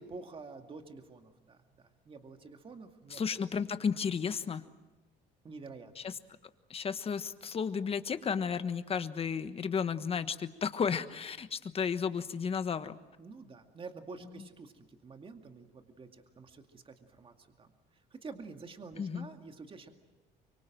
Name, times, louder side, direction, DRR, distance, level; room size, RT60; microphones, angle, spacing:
voice 1, 0.0-3.4 5.4-5.9 13.2-17.7 18.1-19.9, right 4 dB, 30° right, 5 dB, 2.2 m, -48 dB
voice 2, 3.1-4.6 6.0-6.1 6.7-13.0 19.0-19.3, left 6 dB, 35° left, 11 dB, 1.3 m, -33 dB
24.5 x 24.0 x 7.6 m, 1.1 s
cardioid pair, 110°, 17 cm